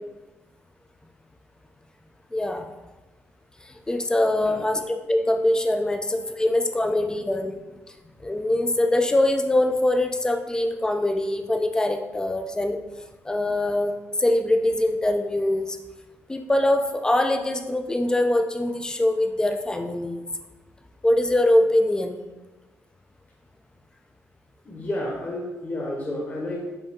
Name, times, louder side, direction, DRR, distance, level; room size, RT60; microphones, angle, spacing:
voice 1, 2.3-2.7 3.9-7.6 8.2-12.8 13.2-15.8 16.3-20.2 21.0-22.2, left 1 dB, 15° left, 6 dB, 0.5 m, -23 dB
voice 2, 4.2-4.7 24.6-26.8, left 1 dB, 30° left, -3 dB, 1.3 m, -32 dB
8.3 x 3.6 x 3.6 m, 1.2 s
cardioid pair, 120°, 6 cm